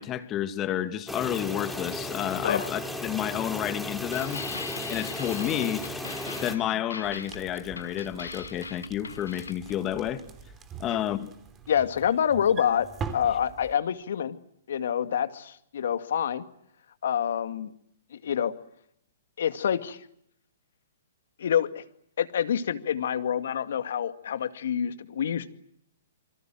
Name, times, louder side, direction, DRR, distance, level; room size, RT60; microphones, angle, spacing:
voice 1, 0.0-4.4 4.9-5.8 6.4-10.2 10.8-11.3, left 11 dB, 25° left, 2.3 m, -30 dB
sound 1, 1.1-6.6, left 1 dB, ahead, 4.0 m, -35 dB
sound 2, 4.1-9.8, left 4 dB, 80° left, 2.1 m, -40 dB
sound 3, 7.0-13.7, right 5 dB, 20° right, 3.4 m, -43 dB
voice 2, 11.7-12.9 13.1-14.4 14.7-16.4 17.0-17.7 18.1-18.5 19.4-20.0 21.4-21.8 22.2-25.5, left 9 dB, 60° left, 2.2 m, -27 dB
27.5 x 24.5 x 7.7 m
figure-of-eight pair, 120°, 0 cm